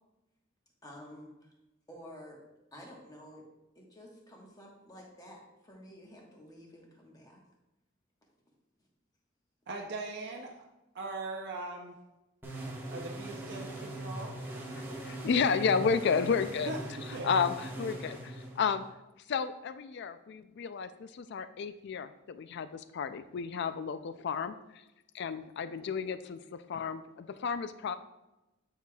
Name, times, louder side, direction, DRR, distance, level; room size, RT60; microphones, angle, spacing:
voice 1, 0.8-1.5 1.9-2.4 2.7-3.4 3.7-7.4, equal, 20° left, -2 dB, 1.3 m, -51 dB
voice 2, 9.7-10.5 10.9-12.0 12.9-14.3 16.7-16.8 17.1-17.3, right 3 dB, 55° right, 0 dB, 0.6 m, -40 dB
sound 1, 12.4-18.9, right 1 dB, 10° right, 1.1 m, -41 dB
voice 3, 14.8-16.7 17.1-18.8 19.3-24.8 25.1-28.0, left 6 dB, 60° left, 12 dB, 0.4 m, -32 dB
9.1 x 4.9 x 2.3 m, 0.98 s
head